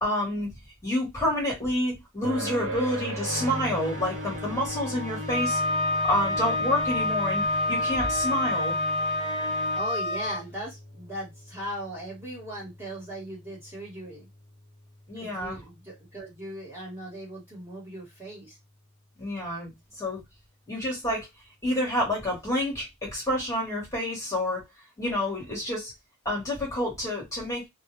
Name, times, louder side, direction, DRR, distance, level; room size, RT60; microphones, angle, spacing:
voice 1, 0.0-0.5 0.8-5.6 6.0-8.8 15.1-15.6 19.2-20.2 20.7-21.3 21.6-24.6 25.0-25.9 26.2-27.7, left 1 dB, 15° left, 1.1 m, -28 dB
sound 1, 2.2-17.1, right 1 dB, 70° right, 0.9 m, -41 dB
sound 2, 3.2-9.8, left 1 dB, 35° right, 0.7 m, -38 dB
Wind instrument woodwind instrument, 5.3-10.4, left 2 dB, 40° left, 0.6 m, -27 dB
voice 2, 9.7-14.3 15.2-18.6, right 1 dB, 10° right, 1.2 m, -38 dB
2.3 x 2.0 x 3.0 m
head